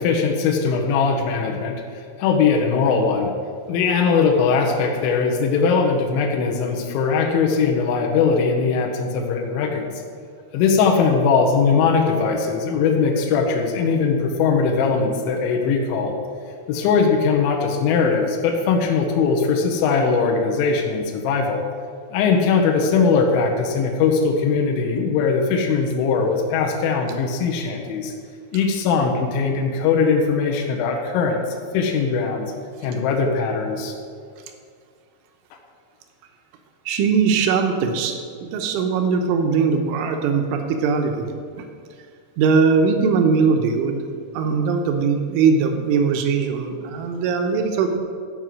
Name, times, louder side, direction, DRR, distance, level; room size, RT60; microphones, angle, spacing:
voice 1, 0.0-3.3 3.7-9.9 10.5-16.1 16.7-21.6 22.1-28.1 28.5-31.4 31.7-32.5 32.8-33.9, left 5 dB, 75° left, 1 dB, 3.3 m, -20 dB
voice 2, 36.9-38.2 38.4-41.3 42.4-44.0 44.3-48.0, right 5 dB, 80° right, 5 dB, 3.4 m, -20 dB
12.5 x 5.4 x 7.6 m, 2.2 s
omnidirectional pair, 5.6 m